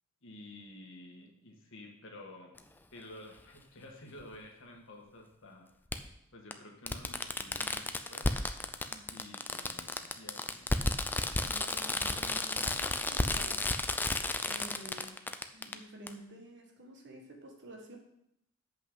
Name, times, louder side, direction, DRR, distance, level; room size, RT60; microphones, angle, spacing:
voice 1, 0.2-2.5 2.9-5.7 6.3-8.3 9.1-10.7, left 1 dB, 65° left, 1 dB, 1.7 m, -51 dB
Fireworks, 2.6-2.7 4.2-4.3 5.9-6.0 6.5-6.6 6.9-15.7 16.1-16.2, left 2 dB, 10° left, 0.4 m, -32 dB
voice 2, 11.4-13.6 14.3-15.1 15.5-18.0, right 1 dB, 55° right, 2 dB, 1.6 m, -49 dB
7.7 x 5.6 x 5.6 m, 0.78 s
head